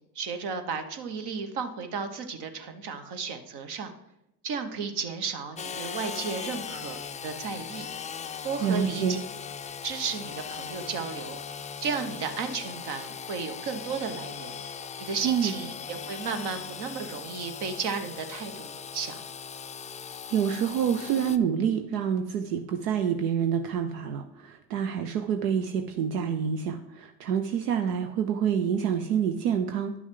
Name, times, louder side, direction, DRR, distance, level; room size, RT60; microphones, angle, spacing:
voice 1, 0.1-3.9 4.4-7.9 8.4-9.2 9.8-11.4 11.8-14.6 15.0-19.2, right 5 dB, 55° right, 7 dB, 1.3 m, -34 dB
Engine / Sawing, 5.6-21.4, left 7 dB, 15° left, 0.4 m, -39 dB
voice 2, 8.6-9.2 15.2-15.5 20.3-30.0, right 8 dB, 85° right, 6 dB, 0.7 m, -27 dB
11.0 x 6.2 x 3.8 m, 0.85 s
hypercardioid pair, 75°, 46 cm